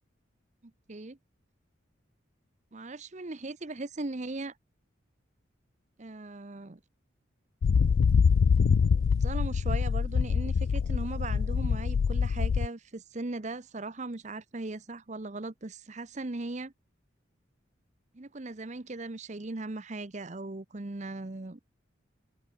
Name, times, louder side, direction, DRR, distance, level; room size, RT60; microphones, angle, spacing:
voice 1, 2.7-4.6 6.0-6.8 9.1-16.7 18.1-21.6, right 2 dB, 35° right, 0.8 m, -38 dB
sound 1, 7.6-12.7, left 6 dB, 80° left, 0.4 m, -25 dB
head